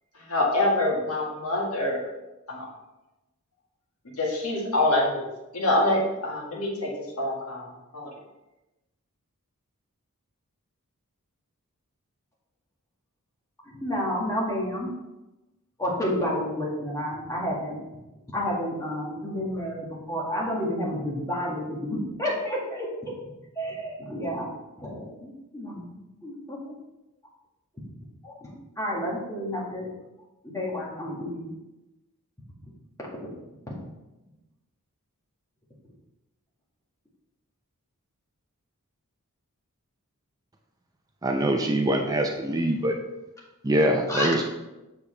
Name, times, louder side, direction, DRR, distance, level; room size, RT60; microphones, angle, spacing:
voice 1, 0.1-2.1 2.5-2.7 4.0-5.2 5.5-8.2, left 1 dB, 70° left, -2 dB, 1.7 m, -26 dB
voice 2, 13.7-14.9 15.8-17.8 18.3-23.1 23.6-24.5 24.8-26.6 28.2-29.9 30.4-31.5 33.0-33.1 33.7-33.8 44.1-44.4, equal, 15° left, -4 dB, 1.8 m, -30 dB
voice 3, 41.2-42.9 43.6-44.4, right 1 dB, 15° right, 2 dB, 0.5 m, -24 dB
6.8 x 6.7 x 3.3 m, 1.0 s
head